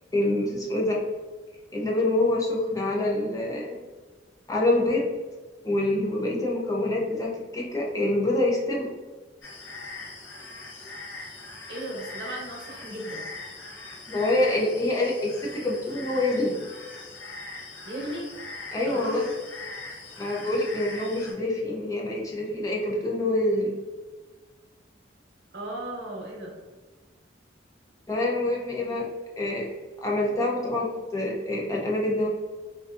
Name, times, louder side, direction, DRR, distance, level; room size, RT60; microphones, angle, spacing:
voice 1, 0.1-1.0 1.7-3.7 4.5-5.2 5.6-8.9 14.1-16.5 18.7-19.3 20.2-23.7 28.1-29.1 29.4-29.7 30.0-32.3, left 1 dB, 20° left, -3 dB, 0.4 m, -26 dB
sound 1, 9.4-21.3, left 3 dB, 80° left, 0.6 m, -41 dB
voice 2, 11.7-13.3 17.8-18.3 18.8-19.3 25.5-26.5, right 1 dB, 70° right, -2 dB, 0.7 m, -36 dB
2.6 x 2.2 x 2.4 m, 1.3 s
head